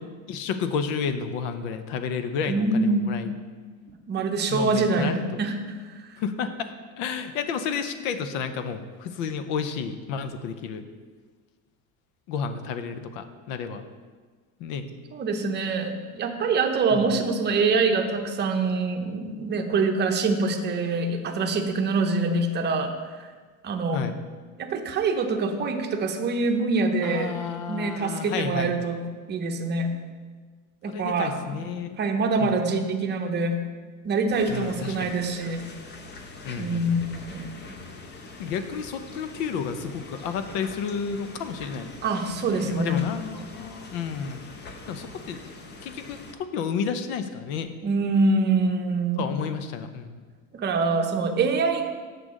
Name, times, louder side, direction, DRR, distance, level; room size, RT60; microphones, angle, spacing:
voice 1, 0.3-3.3 4.5-5.2 6.2-6.7 7.0-10.8 12.3-13.9 14.6-14.9 16.9-17.2 23.9-24.2 27.0-28.7 30.9-32.0 32.4-32.6 34.5-35.1 36.4-37.0 38.4-41.9 42.4-44.4 44.9-45.4 45.8-47.7 49.2-50.2, left 6 dB, 70° left, 10 dB, 0.8 m, -31 dB
voice 2, 2.5-3.0 4.1-5.8 6.1-6.2 15.1-22.9 23.2-23.3 23.6-24.1 24.6-27.3 27.7-29.0 29.3-30.0 30.8-31.3 32.0-33.6 34.0-35.7 36.6-37.4 42.0-43.0 47.8-49.3 50.5-51.9, right 3 dB, 25° right, 4 dB, 0.8 m, -25 dB
sound 1, 34.3-46.3, left 3 dB, 25° left, 0.7 m, -43 dB
8.1 x 6.7 x 3.7 m, 1.4 s
supercardioid pair, 135°, 40 cm